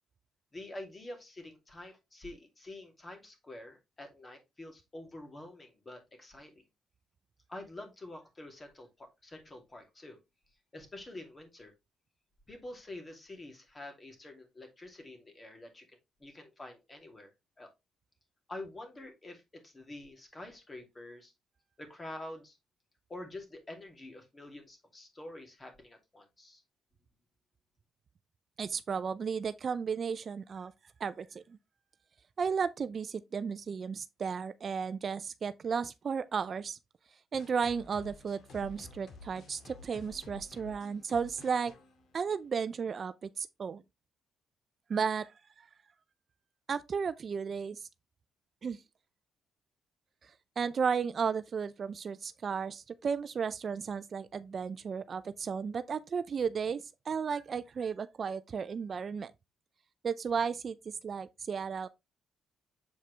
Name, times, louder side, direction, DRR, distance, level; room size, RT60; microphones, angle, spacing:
voice 1, 0.5-6.5 7.5-10.2 10.7-11.7 12.5-17.7 18.5-21.3 21.8-22.6 23.1-26.6, left 1 dB, 25° left, 2.5 m, -47 dB
voice 2, 28.6-30.7 31.0-31.6 32.4-36.8 37.3-41.7 42.1-43.8 44.9-45.3 45.6-45.7 46.7-47.9 48.6-48.8 50.6-59.3 60.0-60.8 61.0-61.9, right 6 dB, 45° right, 0.4 m, -34 dB
sound 1, 37.3-42.8, left 3 dB, 65° left, 2.1 m, -52 dB
7.3 x 4.7 x 3.3 m
cardioid pair, 90°, 0 cm